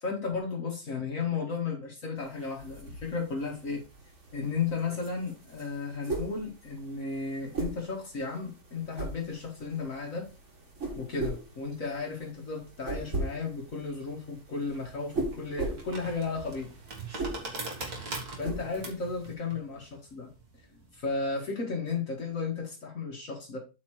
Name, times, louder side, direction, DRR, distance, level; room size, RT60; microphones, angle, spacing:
voice 1, 0.0-3.8 4.3-10.3 11.0-16.7 18.4-20.3 20.9-23.6, left 4 dB, 60° left, 0 dB, 2.0 m, -34 dB
sound 1, 2.2-19.3, right 3 dB, 55° right, 2.8 m, -40 dB
sound 2, 14.7-21.3, right 3 dB, 80° right, 2.6 m, -42 dB
8.3 x 4.5 x 4.7 m, 0.30 s
omnidirectional pair, 1.6 m